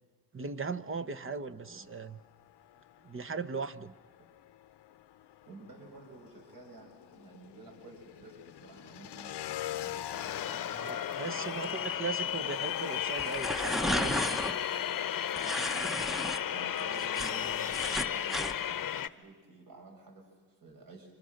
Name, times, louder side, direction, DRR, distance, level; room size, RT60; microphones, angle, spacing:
voice 1, 0.3-2.2 3.0-3.9 10.7-14.2 14.6-14.8, right 5 dB, 30° right, 12 dB, 1.1 m, -38 dB
voice 2, 1.3-1.9 5.5-10.7 11.2-11.8 15.4-21.1, right 3 dB, 55° right, 2 dB, 6.0 m, -52 dB
Motorcycle / Engine, 1.7-19.1, left 13 dB, 70° left, 0.9 m, -47 dB
sound 1, 10.1-19.1, left 10 dB, 50° left, 1.0 m, -34 dB
sound 2, 13.2-14.5 15.4-16.4 16.8-18.5, left 1 dB, ahead, 0.9 m, -33 dB
30.0 x 26.5 x 6.5 m, 1.4 s
cardioid pair, 100°, 42 cm